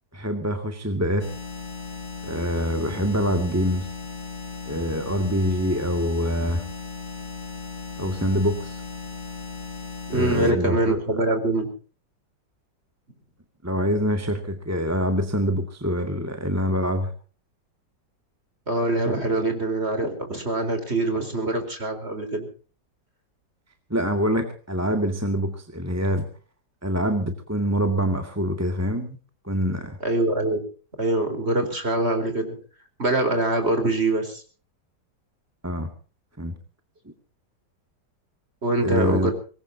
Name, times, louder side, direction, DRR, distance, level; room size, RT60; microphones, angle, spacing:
voice 1, 0.1-1.3 2.2-3.9 4.7-6.6 8.0-8.8 10.1-11.3 13.6-17.1 23.9-26.2 26.8-29.2 29.4-30.0 35.6-35.9 36.4-36.5 38.8-39.3, equal, 10° right, 5 dB, 1.9 m, -25 dB
sound 1, 1.2-10.5, left 4 dB, 25° left, 1.9 m, -36 dB
voice 2, 10.1-11.7 18.7-22.5 30.0-30.6 31.0-32.5 33.0-34.4 38.6-39.3, right 2 dB, 35° right, 7 dB, 4.6 m, -24 dB
24.5 x 20.5 x 2.8 m, 0.39 s
omnidirectional pair, 2.0 m